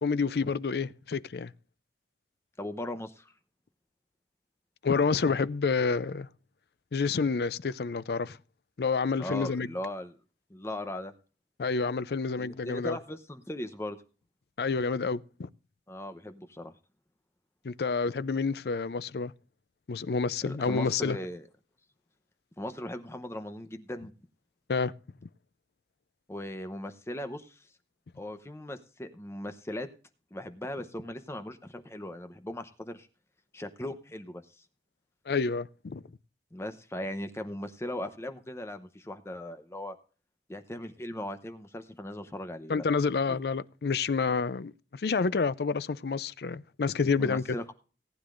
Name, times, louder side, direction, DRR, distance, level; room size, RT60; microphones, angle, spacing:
voice 1, 0.0-1.5 4.8-6.3 6.9-8.4 8.8-9.7 11.6-13.0 14.6-15.5 17.6-19.3 19.9-21.2 24.7-24.9 35.3-36.0 42.7-47.6, left 4 dB, 60° left, 0.4 m, -29 dB
voice 2, 2.6-3.3 9.2-10.1 10.5-11.1 12.4-14.0 15.9-16.7 20.5-21.5 22.6-24.1 26.3-27.7 28.2-29.9 30.3-33.1 33.5-34.6 36.5-39.9 40.5-42.8 43.3-43.4 47.2-47.7, left 1 dB, 15° left, 0.8 m, -38 dB
18.5 x 9.6 x 2.5 m
head